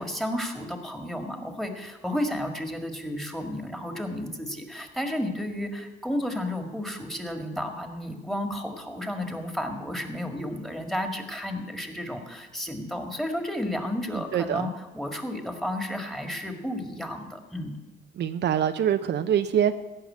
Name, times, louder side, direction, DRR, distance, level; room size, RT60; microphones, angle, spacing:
voice 1, 0.0-17.8, left 1 dB, ahead, 5 dB, 1.8 m, -32 dB
voice 2, 14.1-14.7 18.2-19.7, right 9 dB, 60° right, 9 dB, 0.6 m, -25 dB
15.5 x 5.7 x 8.5 m, 1.2 s
cardioid pair, 90°, 20 cm